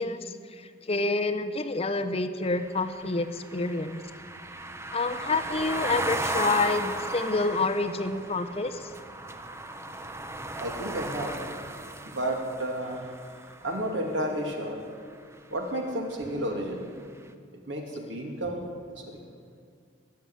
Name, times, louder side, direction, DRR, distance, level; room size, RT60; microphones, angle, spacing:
voice 1, 0.0-4.0 4.9-8.9, left 3 dB, 30° left, 8 dB, 0.8 m, -28 dB
sound 1, 2.5-14.5, right 2 dB, 15° right, 0.7 m, -36 dB
voice 2, 10.6-11.4 12.0-13.0 13.6-14.8 15.5-16.9 17.7-18.6 18.9-19.2, right 1 dB, 75° right, 1 dB, 2.7 m, -31 dB
20.5 x 7.0 x 9.6 m, 2.2 s
head